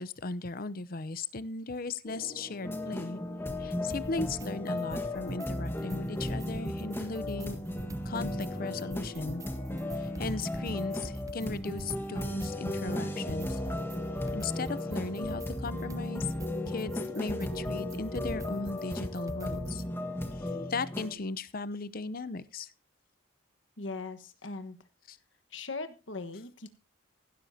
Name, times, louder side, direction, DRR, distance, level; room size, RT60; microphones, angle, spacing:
voice 1, 0.0-3.2 3.6-7.6 8.0-9.4 10.0-13.6 14.3-16.3 16.7-19.8 20.3-22.7 25.1-25.2, left 3 dB, 50° left, 17 dB, 0.7 m, -37 dB
sound 1, 2.1-20.7, left 2 dB, 30° left, 2.5 m, -44 dB
sound 2, 2.6-21.1, left 1 dB, 10° left, 1.5 m, -36 dB
sound 3, 3.9-4.5 4.8-5.5 5.8-8.5 8.8-19.9, right 1 dB, 15° right, 0.6 m, -42 dB
voice 2, 23.8-24.8 25.5-26.7, left 3 dB, 70° left, 9 dB, 1.5 m, -39 dB
16.0 x 12.5 x 2.8 m, 0.31 s
head